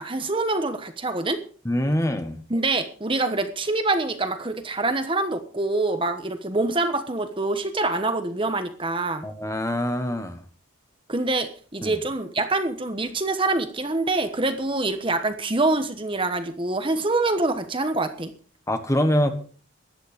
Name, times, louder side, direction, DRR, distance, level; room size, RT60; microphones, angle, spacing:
voice 1, 0.0-1.4 2.5-9.3 11.1-18.3, right 2 dB, 25° right, 8 dB, 1.2 m, -25 dB
voice 2, 1.6-2.4 9.2-10.4 11.8-12.0 18.7-19.3, left 1 dB, 15° left, 8 dB, 1.4 m, -24 dB
15.5 x 11.5 x 5.2 m, 0.41 s
head